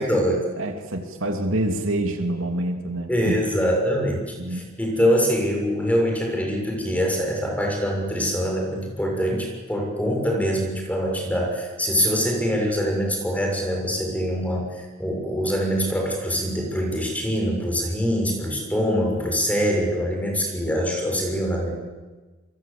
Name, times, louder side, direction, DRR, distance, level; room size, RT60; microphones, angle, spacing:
voice 1, 0.0-0.4 3.1-21.7, equal, 5° left, 1 dB, 6.5 m, -24 dB
voice 2, 0.6-3.4 4.4-4.7, right 1 dB, 70° right, 4 dB, 3.0 m, -26 dB
28.0 x 23.5 x 8.7 m, 1.3 s
head